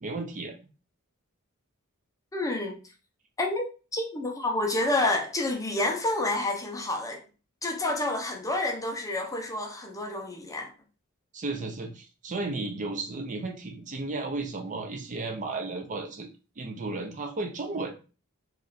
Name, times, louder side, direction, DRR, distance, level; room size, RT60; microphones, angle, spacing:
voice 1, 0.0-0.5 11.3-16.3 16.6-18.0, right 3 dB, 35° right, 0.5 m, -34 dB
voice 2, 2.3-2.8 3.4-3.6 3.9-7.2 7.6-10.7, left 2 dB, 15° left, 0.6 m, -29 dB
3.1 x 2.4 x 3.9 m
head